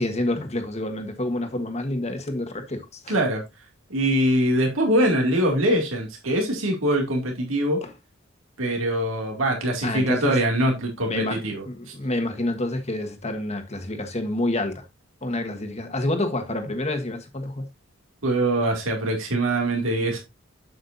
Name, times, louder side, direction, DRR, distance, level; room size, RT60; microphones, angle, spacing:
voice 1, 0.0-3.2 7.8-7.9 9.8-10.4 11.1-14.9 15.2-17.7, left 1 dB, 35° left, 1.4 m, -28 dB
voice 2, 3.1-3.4 3.9-7.8 8.6-11.6 18.2-20.2, right 1 dB, 75° right, 2.4 m, -23 dB
7.8 x 7.7 x 2.6 m
head